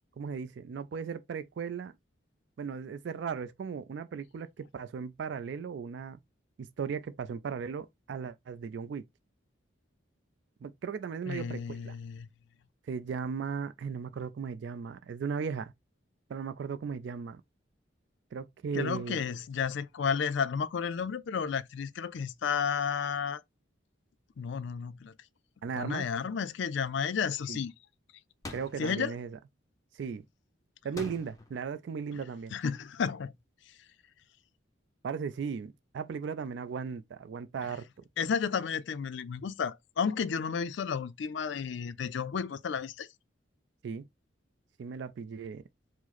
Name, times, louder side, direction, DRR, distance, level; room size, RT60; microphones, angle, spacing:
voice 1, 0.2-1.9 2.6-6.2 6.6-9.0 10.6-11.9 12.9-15.7 16.3-17.4 18.3-19.2 25.6-26.1 27.5-27.6 28.5-29.4 29.9-30.2 30.8-32.6 35.0-37.9 43.8-44.1 44.8-45.6, right 6 dB, 65° right, 0.3 m, -37 dB
voice 2, 11.3-12.3 18.7-23.4 24.4-25.1 25.8-27.7 28.8-29.1 32.5-33.3 38.2-43.1, left 6 dB, 65° left, 0.4 m, -32 dB
sound 1, 28.4-28.9 31.0-31.6, left 2 dB, 15° left, 0.6 m, -43 dB
4.8 x 2.0 x 4.0 m
head